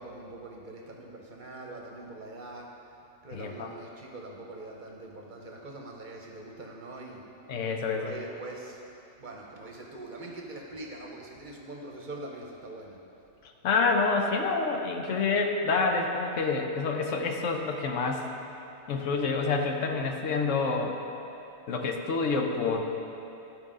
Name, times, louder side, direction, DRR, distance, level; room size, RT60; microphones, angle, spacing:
voice 1, 0.0-2.7 3.2-7.2 7.8-8.8 9.2-13.0, right 2 dB, 45° right, -1 dB, 0.8 m, -43 dB
voice 2, 3.3-3.7 7.5-8.1 13.6-18.2 18.9-21.0 21.7-22.8, left 4 dB, 85° left, 3 dB, 1.1 m, -27 dB
13.0 x 4.7 x 3.7 m, 2.9 s
omnidirectional pair, 1.3 m